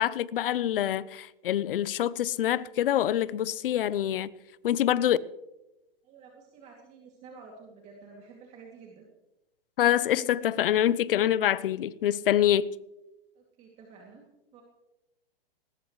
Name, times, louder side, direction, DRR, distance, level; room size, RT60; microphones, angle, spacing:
voice 1, 0.0-4.3 4.6-5.2 9.8-12.7, left 11 dB, 65° left, 0.8 m, -25 dB
voice 2, 6.0-9.0 13.3-14.2 14.5-14.6, right 4 dB, 25° right, 2.6 m, -50 dB
20.0 x 19.5 x 3.2 m
hypercardioid pair, 155°, 29 cm